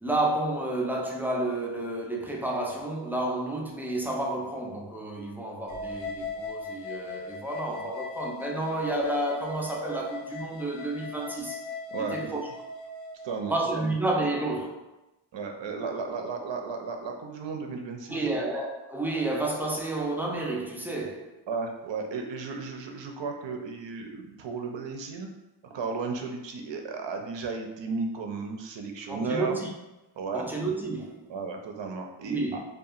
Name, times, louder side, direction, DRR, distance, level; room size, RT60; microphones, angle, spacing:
voice 1, 0.0-11.6 12.0-12.4 13.5-14.8 18.1-21.4 29.1-29.7 30.3-31.3 32.2-32.6, right 2 dB, 5° right, 0.4 m, -30 dB
sound 1, 5.7-13.4, left 3 dB, 75° left, 0.6 m, -39 dB
voice 2, 11.9-12.3 13.2-13.9 15.3-18.3 21.5-25.3 25.6-29.6 30.2-30.4 31.3-32.4, right 4 dB, 65° right, 0.6 m, -34 dB
2.8 x 2.4 x 2.4 m
cardioid pair, 45°, 49 cm